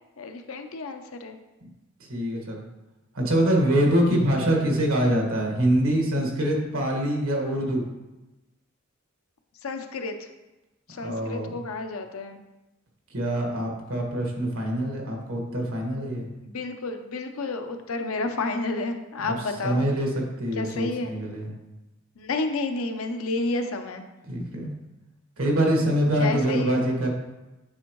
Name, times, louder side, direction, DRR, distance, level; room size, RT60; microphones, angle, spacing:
voice 1, 0.2-1.4 9.6-10.3 10.9-12.4 16.4-19.8 20.6-21.1 22.2-24.0 26.2-26.8, left 3 dB, 85° left, 6 dB, 0.6 m, -30 dB
voice 2, 2.1-2.6 3.1-7.8 10.9-11.6 13.1-16.3 19.2-19.3 19.6-21.5 24.3-24.7 25.4-27.1, right 1 dB, 85° right, 0 dB, 1.6 m, -24 dB
8.7 x 4.4 x 3.1 m, 1.0 s
head